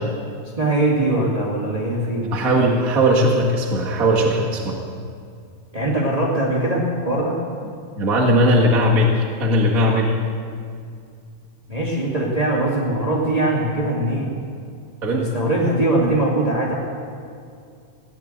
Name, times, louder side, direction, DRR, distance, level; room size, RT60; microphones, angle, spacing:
voice 1, 0.6-2.8 5.7-7.4 11.7-14.3 15.1-16.8, right 1 dB, 15° right, -4 dB, 1.9 m, -21 dB
voice 2, 2.3-4.8 8.0-10.1 15.0-15.2, equal, 35° right, -3 dB, 1.6 m, -18 dB
16.5 x 10.5 x 8.0 m, 2.3 s
omnidirectional pair, 3.5 m